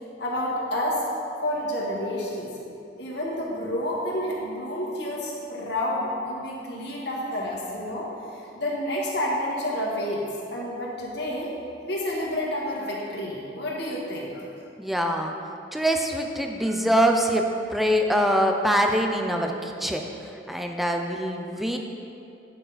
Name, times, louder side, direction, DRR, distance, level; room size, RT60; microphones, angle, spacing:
voice 1, 0.2-1.0 1.4-2.5 3.0-10.2 10.5-11.5 11.8-14.4 16.6-16.8, left 1 dB, 65° left, -4 dB, 1.7 m, -29 dB
voice 2, 14.8-15.3 15.7-20.1 20.5-21.8, equal, ahead, 2 dB, 0.5 m, -24 dB
9.2 x 6.4 x 4.1 m, 2.6 s
head